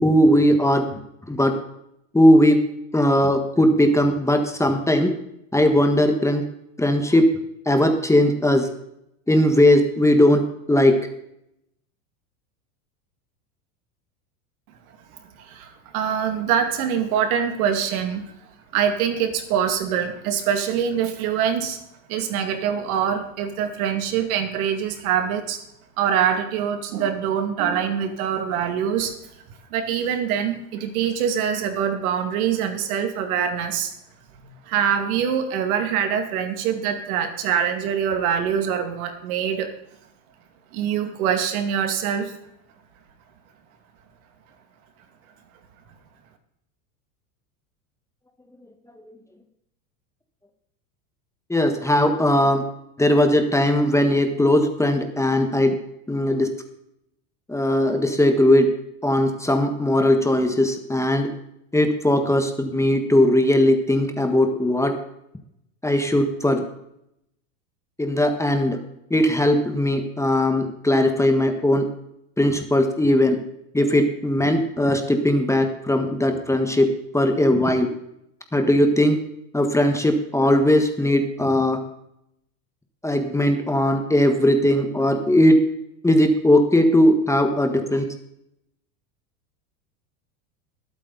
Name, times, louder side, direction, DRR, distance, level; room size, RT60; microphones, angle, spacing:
voice 1, 0.0-1.0 1.3-1.5 2.1-2.6 2.9-5.1 5.5-6.4 6.8-7.2 7.6-8.7 9.3-10.4 10.7-10.9 51.5-52.6 53.0-55.7 56.1-56.5 57.5-58.7 59.0-61.3 61.7-64.9 65.8-66.6 68.0-68.8 69.1-71.8 72.4-73.4 73.7-76.9 77.1-77.9 78.5-79.2 79.5-81.8 83.0-85.6 86.0-88.0, left 1 dB, 5° left, 5 dB, 1.6 m, -19 dB
voice 2, 15.4-18.3 18.7-21.8 22.1-25.6 26.0-29.1 29.7-33.9 34.7-39.7 40.7-42.3, right 8 dB, 70° right, 6 dB, 2.5 m, -24 dB
20.5 x 8.7 x 4.1 m, 0.78 s
supercardioid pair, 115°, 44 cm